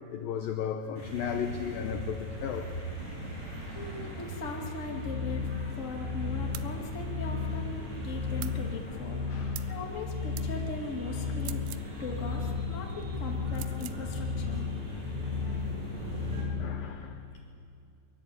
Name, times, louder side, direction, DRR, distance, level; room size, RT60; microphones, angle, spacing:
voice 1, 0.0-2.7 8.9-9.0 9.3-9.7 16.6-17.2, left 8 dB, 75° left, 6 dB, 2.1 m, -35 dB
sound 1, 1.0-16.4, equal, 35° right, 8.2 m, -41 dB
voice 2, 3.7-5.5 5.7-9.2 9.7-11.6 12.0-14.7, left 2 dB, 30° left, 1 dB, 1.3 m, -39 dB
sound 2, 4.9-17.0, left 5 dB, 55° left, 2.7 m, -35 dB
sound 3, 6.5-6.7 8.4-8.6 9.5-9.8 10.4-10.5 11.4-11.9 13.5-14.0, right 16 dB, 80° right, 3.0 m, -43 dB
23.5 x 23.5 x 8.6 m, 2.5 s
omnidirectional pair, 5.4 m